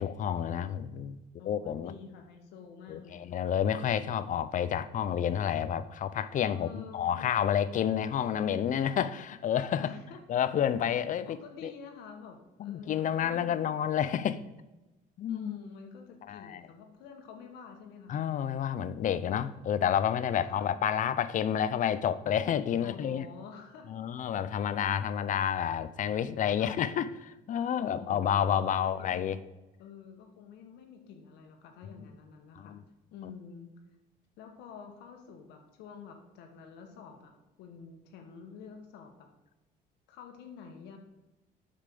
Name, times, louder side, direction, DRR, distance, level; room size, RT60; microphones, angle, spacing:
voice 1, 0.0-1.9 2.9-9.9 10.3-11.4 11.6-11.7 12.6-14.4 15.2-15.6 16.3-16.6 18.1-23.3 23.9-29.4 32.6-32.8, left 9 dB, 50° left, 0.6 m, -30 dB
voice 2, 1.4-3.2 6.5-7.3 9.8-10.2 11.2-13.7 15.3-18.2 20.5-20.7 22.8-23.9 26.6-26.8 27.8-29.4 29.8-32.8 33.1-33.7 34.4-39.3 40.1-41.0, left 6 dB, 85° left, 1.6 m, -49 dB
8.3 x 5.6 x 6.8 m
cardioid pair, 110°, 17 cm